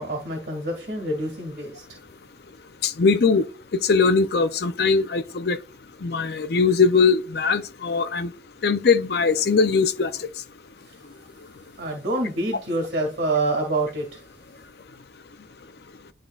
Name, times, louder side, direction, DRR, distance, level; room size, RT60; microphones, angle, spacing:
voice 1, 0.0-2.0 11.8-14.2, right 2 dB, 65° right, 2.1 m, -27 dB
voice 2, 2.8-3.5 3.7-5.6 6.0-8.3 8.6-10.1, left 4 dB, 55° left, 0.5 m, -20 dB
11.0 x 3.8 x 2.3 m
head